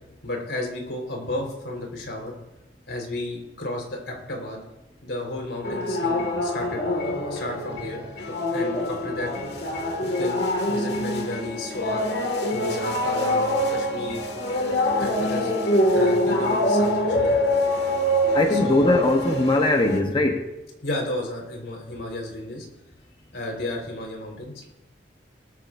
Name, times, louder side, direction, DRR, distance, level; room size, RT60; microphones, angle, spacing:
voice 1, 0.2-2.4 2.9-4.6 5.0-8.0 8.4-9.3 10.0-12.0 12.5-14.2 15.0-15.5 15.9-17.3 18.5-18.9 20.8-22.7 23.3-24.7, left 1 dB, 85° left, 1 dB, 4.0 m, -33 dB
sound 1, 5.6-20.0, left 1 dB, 65° left, 1.8 m, -25 dB
voice 2, 18.3-20.5, left 2 dB, 25° left, 3 dB, 0.9 m, -20 dB
18.5 x 14.0 x 2.5 m, 0.98 s
head